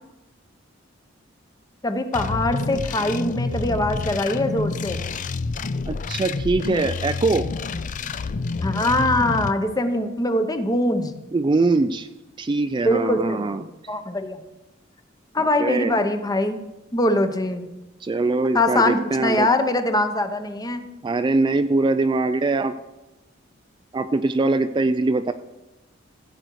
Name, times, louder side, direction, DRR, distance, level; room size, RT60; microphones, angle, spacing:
voice 1, 1.8-5.0 8.6-11.1 12.8-14.4 15.3-16.7 16.9-17.7 18.5-20.9, left 1 dB, 20° left, 8 dB, 0.8 m, -23 dB
sound 1, 2.1-9.5, left 4 dB, 40° left, 0.4 m, -28 dB
voice 2, 5.9-7.5 11.3-12.1 12.4-13.6 15.4-16.0 18.0-19.5 21.0-22.7 23.9-25.3, right 3 dB, 25° right, 10 dB, 0.3 m, -22 dB
14.5 x 7.9 x 4.7 m, 1.0 s
head